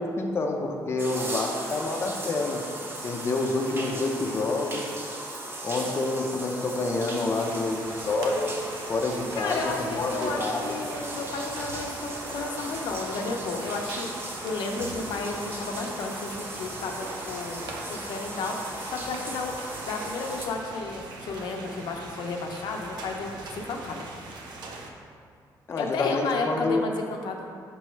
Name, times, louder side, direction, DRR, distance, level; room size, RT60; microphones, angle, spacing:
voice 1, 0.0-2.6 3.0-4.9 5.6-8.6 8.9-10.8 25.7-26.8, left 2 dB, 35° left, 1 dB, 0.6 m, -28 dB
sound 1, 1.0-20.5, right 1 dB, 30° right, 1.0 m, -37 dB
sound 2, 7.4-24.9, right 2 dB, 85° right, 0.7 m, -42 dB
voice 2, 9.4-19.6 19.8-24.1 25.8-27.5, left 3 dB, 80° left, 2 dB, 0.6 m, -33 dB
6.1 x 3.1 x 5.6 m, 2.2 s
cardioid pair, 115°, 7 cm